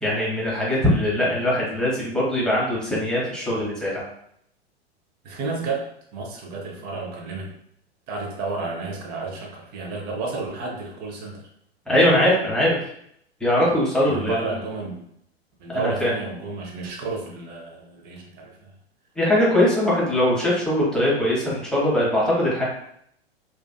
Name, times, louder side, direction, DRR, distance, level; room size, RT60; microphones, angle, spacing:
voice 1, 0.0-4.0 11.9-12.8 13.4-14.6 15.7-16.1 19.2-22.6, left 1 dB, ahead, -7 dB, 0.8 m, -21 dB
voice 2, 5.2-7.5 8.1-11.4 13.5-13.6 14.1-15.1 15.6-18.7, right 3 dB, 30° right, 0 dB, 0.7 m, -31 dB
2.5 x 2.4 x 2.2 m, 0.70 s
figure-of-eight pair, 95°, 32 cm